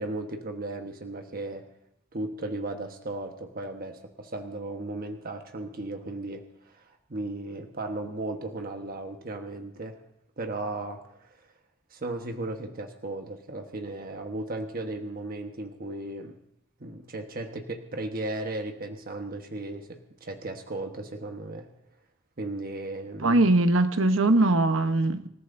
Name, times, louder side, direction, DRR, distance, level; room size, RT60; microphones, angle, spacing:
voice 1, 0.0-1.7 2.1-10.0 10.4-11.5 11.9-16.4 16.8-21.7 22.4-23.4, right 2 dB, 45° right, 1.3 m, -36 dB
voice 2, 23.2-25.3, right 2 dB, 80° right, 1.0 m, -21 dB
26.5 x 14.0 x 2.7 m
head